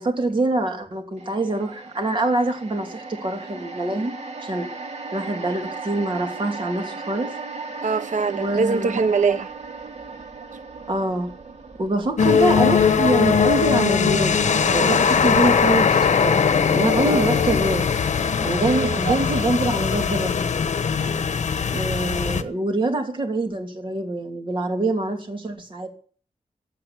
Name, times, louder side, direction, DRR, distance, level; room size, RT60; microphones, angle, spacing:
voice 1, 0.0-4.1 4.4-4.7 5.1-7.3 8.3-9.0 10.9-11.3 11.8-16.4 16.7-17.9 18.4-20.3 21.7-25.9, right 2 dB, 40° right, 2.9 m, -25 dB
sound 1, 1.2-15.5 15.9-16.0, right 3 dB, 65° right, 2.1 m, -37 dB
voice 2, 7.8-9.5 17.0-17.3 18.6-19.4, right 5 dB, 85° right, 0.9 m, -23 dB
sound 2, 12.2-22.4, left 6 dB, 75° left, 1.1 m, -20 dB
15.5 x 8.6 x 8.2 m
wide cardioid pair, 165°, 12 cm